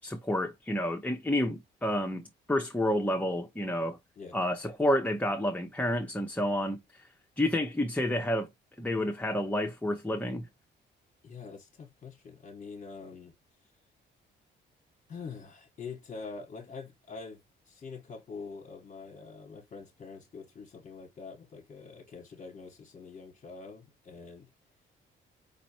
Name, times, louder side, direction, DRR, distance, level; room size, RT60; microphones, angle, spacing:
voice 1, 0.0-4.0 4.3-7.1 7.4-8.5 8.8-10.5, left 1 dB, 5° left, 0.8 m, -30 dB
voice 2, 11.2-13.3 15.1-17.4 17.7-24.5, left 4 dB, 40° left, 1.3 m, -45 dB
5.3 x 3.0 x 2.9 m
cardioid pair, 90°, 20 cm